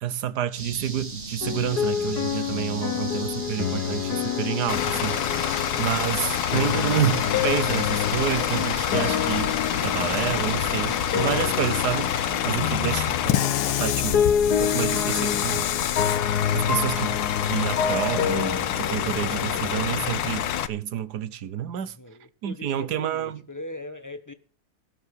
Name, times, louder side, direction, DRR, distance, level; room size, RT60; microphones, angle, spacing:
voice 1, 0.0-5.4 5.8-14.2 14.6-15.6 16.5-17.2 17.4-21.9 22.4-23.4, right 10 dB, 55° right, 1.4 m, -29 dB
sound 1, 0.6-12.4, right 3 dB, 30° right, 1.9 m, -38 dB
sound 2, 1.4-5.9 6.5-19.9, left 8 dB, 55° left, 1.4 m, -28 dB
Bus / Idling, 4.7-20.7, left 10 dB, 80° left, 1.8 m, -27 dB
voice 2, 21.8-24.3, left 1 dB, 15° left, 0.6 m, -40 dB
17.0 x 7.9 x 6.5 m
omnidirectional pair, 2.3 m